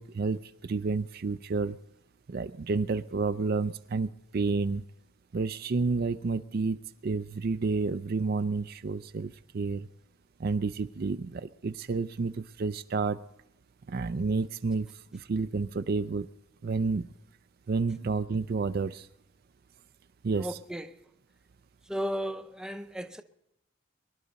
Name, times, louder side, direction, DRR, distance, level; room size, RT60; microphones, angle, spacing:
voice 1, 0.0-1.8 2.3-4.8 5.3-9.9 10.4-13.2 13.9-16.3 16.6-17.1 17.7-19.1 20.2-20.6, right 4 dB, 45° right, 0.4 m, -30 dB
voice 2, 20.4-20.9 21.9-23.2, equal, 5° right, 0.6 m, -34 dB
24.0 x 11.5 x 4.0 m
head